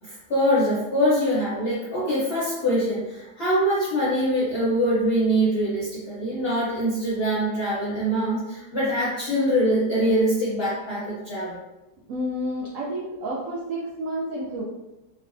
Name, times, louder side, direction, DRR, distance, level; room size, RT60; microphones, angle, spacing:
voice 1, 0.0-11.6, equal, 60° left, -8 dB, 0.6 m, -23 dB
voice 2, 12.1-14.6, equal, 70° right, -6 dB, 0.7 m, -30 dB
3.1 x 2.1 x 2.5 m, 0.99 s
omnidirectional pair, 1.8 m